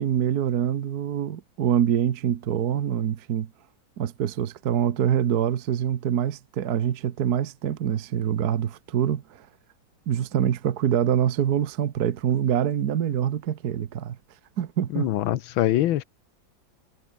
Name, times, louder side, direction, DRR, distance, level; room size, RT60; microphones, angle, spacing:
voice 1, 0.0-3.5 4.0-9.5 10.1-14.2 14.6-15.1, right 9 dB, 55° right, 1.5 m, -25 dB
voice 2, 14.9-16.0, left 13 dB, 90° left, 1.6 m, -23 dB
omnidirectional pair, 2.1 m